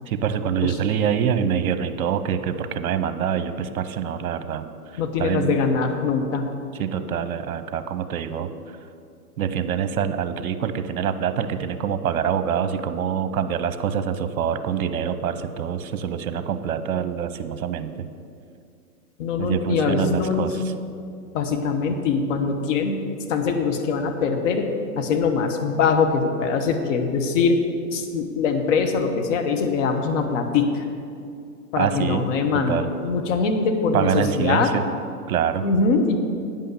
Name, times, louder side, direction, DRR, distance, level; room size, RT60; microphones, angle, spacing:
voice 1, 0.1-5.6 6.8-8.8 9.4-17.9 19.4-20.6 31.8-32.3 32.7-32.9 33.9-34.8 35.3-35.7, right 8 dB, 60° right, 10 dB, 0.8 m, -25 dB
voice 2, 5.0-6.4 19.2-20.5 21.3-23.0 23.3-24.7 25.0-27.6 27.9-30.8 31.7-34.7 35.6-36.2, left 5 dB, 50° left, 5 dB, 1.2 m, -22 dB
9.0 x 5.6 x 7.0 m, 2.4 s
hypercardioid pair, 120°, 48 cm